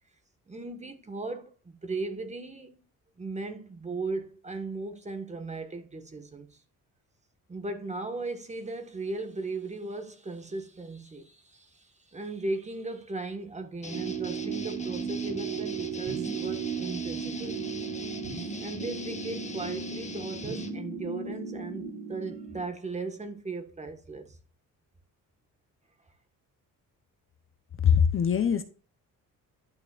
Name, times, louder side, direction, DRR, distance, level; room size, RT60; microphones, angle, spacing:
voice 1, 0.5-2.8 3.2-6.6 7.5-17.7 18.4-24.4, right 3 dB, 20° right, 1.5 m, -37 dB
sound 1, 13.8-20.7, left 3 dB, 20° left, 1.5 m, -42 dB
sound 2, 13.9-22.6, right 6 dB, 45° right, 2.7 m, -36 dB
voice 2, 27.8-28.6, left 7 dB, 40° left, 0.8 m, -22 dB
11.5 x 6.2 x 2.5 m
cardioid pair, 115°, 34 cm